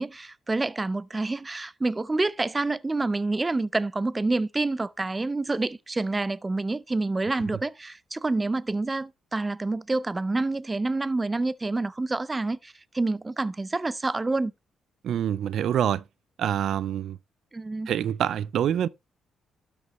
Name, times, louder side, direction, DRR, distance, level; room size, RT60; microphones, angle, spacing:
voice 1, 0.0-14.5 17.5-17.9, right 2 dB, 20° right, 0.5 m, -28 dB
voice 2, 15.0-16.0 16.4-17.2 17.9-18.9, right 10 dB, 70° right, 0.4 m, -26 dB
12.5 x 6.7 x 3.0 m
cardioid pair, 90°, 0 cm